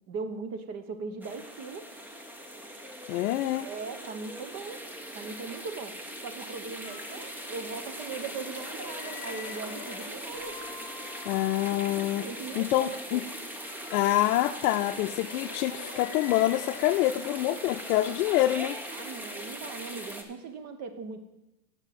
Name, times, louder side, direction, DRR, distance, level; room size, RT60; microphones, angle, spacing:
voice 1, 0.1-1.9 3.6-4.8 5.1-6.0 6.2-10.6 12.2-13.3 18.9-21.2, right 4 dB, 35° right, 8 dB, 1.1 m, -39 dB
sound 1, 1.2-20.2, equal, 5° right, 0.4 m, -40 dB
voice 2, 3.1-3.7 11.3-12.3 12.6-13.2 13.9-18.8, left 14 dB, 70° left, 5 dB, 0.6 m, -26 dB
sound 2, 6.8-10.1 12.5-18.0, left 7 dB, 40° left, 1.2 m, -47 dB
Keyboard (musical), 10.3-13.0, left 3 dB, 80° right, 2.3 m, -50 dB
9.0 x 5.7 x 7.5 m, 0.95 s
supercardioid pair, 145°, 46 cm